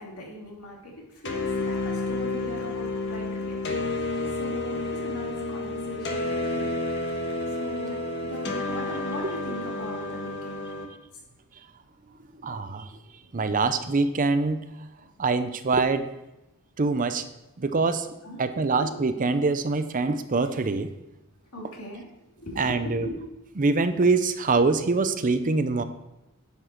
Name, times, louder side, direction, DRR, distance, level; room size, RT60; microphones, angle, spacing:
voice 1, 0.0-6.7 7.5-10.6 13.2-13.9 18.2-18.9 21.5-22.1 22.4-23.2 23.6-23.7, equal, 80° left, -2 dB, 2.8 m, -40 dB
sound 1, 1.2-10.8, left 2 dB, 50° left, 1.3 m, -30 dB
voice 2, 12.4-13.0 13.3-14.6 15.2-16.1 16.8-17.2 17.6-18.1 18.4-20.9 22.6-23.1 23.6-25.8, right 3 dB, 35° right, 10 dB, 0.6 m, -24 dB
10.5 x 7.2 x 4.4 m, 0.94 s
head